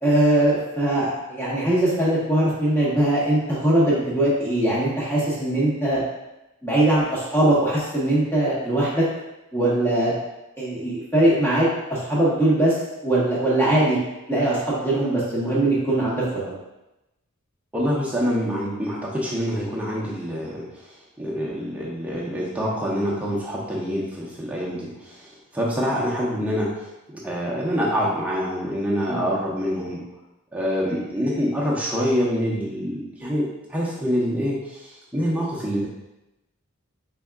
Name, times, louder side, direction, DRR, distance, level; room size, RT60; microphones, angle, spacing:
voice 1, 0.0-6.0 6.6-9.0 9.5-10.1 10.6-12.7 13.0-14.0 14.3-16.6 29.1-29.2, right 1 dB, 10° left, -8 dB, 1.1 m, -21 dB
voice 2, 17.7-20.9 21.2-26.9 27.1-30.0 30.5-35.9, equal, 5° right, -6 dB, 0.8 m, -26 dB
5.1 x 3.5 x 2.3 m, 0.95 s
head